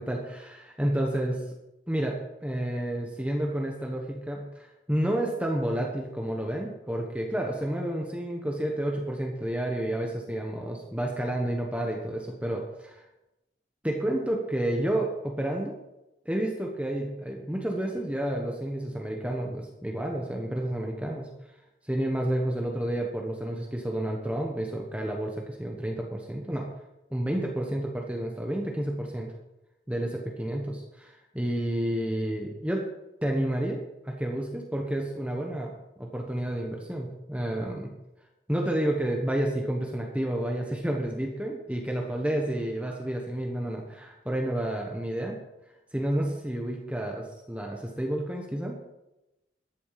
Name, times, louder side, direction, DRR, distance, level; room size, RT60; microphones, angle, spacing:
voice 1, 0.0-0.5 0.8-1.4 1.9-13.0 13.8-15.8 16.2-21.3 21.9-26.7 27.1-29.3 29.9-32.8 33.2-35.7 36.0-37.9 38.5-45.4 45.9-48.8, right 1 dB, 5° right, 0 dB, 1.2 m, -30 dB
13.5 x 8.2 x 5.8 m, 0.95 s
head